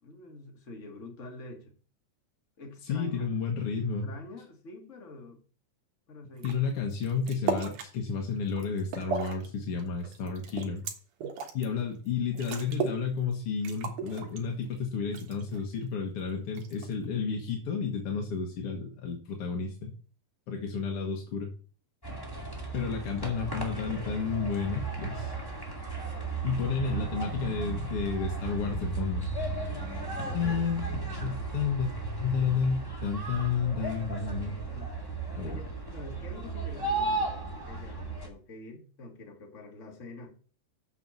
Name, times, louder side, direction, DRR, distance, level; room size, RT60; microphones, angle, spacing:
voice 1, 0.0-1.7 2.6-3.2 4.0-5.4 6.1-6.6 29.6-30.6 34.7-34.9 35.4-40.4, left 2 dB, 30° left, 1.7 m, -46 dB
voice 2, 2.8-4.1 6.4-10.8 11.5-19.9 20.5-21.5 22.7-25.3 26.4-29.3 30.3-30.8 31.2-31.9 32.2-34.6 35.4-35.6, left 5 dB, 55° left, 1.9 m, -31 dB
sound 1, 6.4-6.5 6.9-7.9 8.4-9.5 9.8-11.6 12.1-12.2 12.3-13.0 13.3-13.4 13.7-14.7 15.1-15.7 16.6-17.1, right 6 dB, 70° right, 2.8 m, -35 dB
sound 2, 22.0-38.3, right 3 dB, 10° left, 1.6 m, -35 dB
7.0 x 6.8 x 7.3 m
omnidirectional pair, 3.8 m